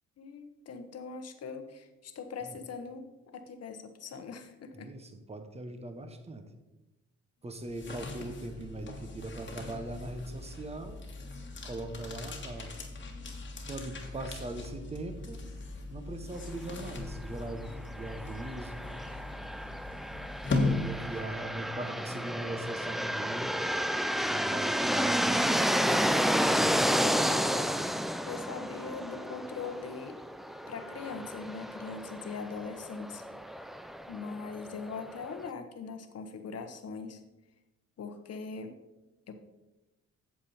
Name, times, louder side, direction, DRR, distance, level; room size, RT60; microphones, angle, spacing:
voice 1, 0.2-3.1 3.3-4.9 21.1-21.2 26.4-27.7 28.3-30.2 30.7-33.2 34.1-37.2 38.0-38.8 39.3-39.4, left 5 dB, 55° left, 7 dB, 1.2 m, -41 dB
voice 2, 4.7-6.5 7.4-11.0 11.6-12.7 13.7-15.4 15.9-18.9 20.5-23.6 24.2-25.4, right 2 dB, 20° right, 7 dB, 1.0 m, -40 dB
sound 1, 7.5-21.6, left 3 dB, 40° left, 1.5 m, -38 dB
sound 2, 17.9-35.5, equal, ahead, 0.3 m, -31 dB
8.6 x 7.0 x 4.3 m, 1.0 s
cardioid pair, 90°, 30 cm